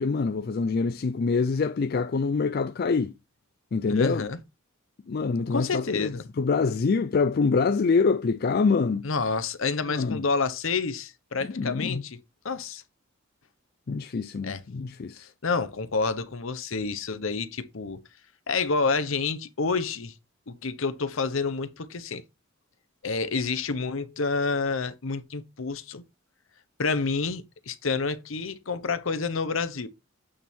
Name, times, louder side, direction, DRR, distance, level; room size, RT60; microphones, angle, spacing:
voice 1, 0.0-3.1 3.7-4.3 5.1-9.1 9.9-10.2 11.4-12.0 13.9-15.3, left 4 dB, 45° left, 0.4 m, -25 dB
voice 2, 3.9-4.4 5.5-6.2 9.0-12.2 12.4-12.8 14.4-14.6 15.2-18.0 18.5-20.1 20.5-22.2 23.0-26.0 26.8-29.9, left 4 dB, 70° left, 0.9 m, -29 dB
8.7 x 3.6 x 4.3 m
head